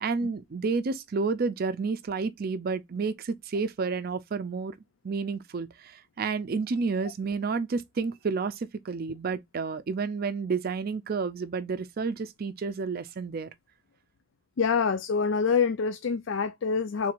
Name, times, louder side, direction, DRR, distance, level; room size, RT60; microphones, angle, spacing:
voice 1, 0.0-4.7 5.0-13.5, right 4 dB, 50° right, 0.4 m, -30 dB
voice 2, 14.6-17.1, left 5 dB, 80° left, 0.4 m, -26 dB
4.5 x 3.7 x 2.4 m
head